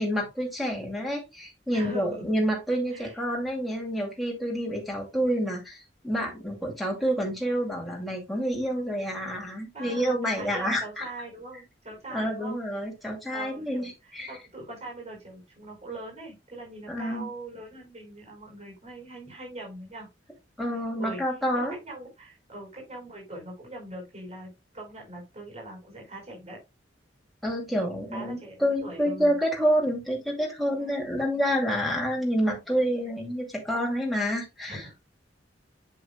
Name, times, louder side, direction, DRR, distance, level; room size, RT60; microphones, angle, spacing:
voice 1, 0.0-11.0 12.1-14.3 16.9-17.3 20.6-21.8 27.4-34.8, equal, ahead, 0 dB, 2.5 m, -28 dB
voice 2, 1.7-2.3 2.9-3.2 9.7-12.6 13.3-20.1 21.0-21.2 21.5-26.6 28.1-29.4 30.8-31.1 34.7-35.0, right 2 dB, 40° right, -2 dB, 4.8 m, -42 dB
7.7 x 7.7 x 2.3 m, 0.22 s
head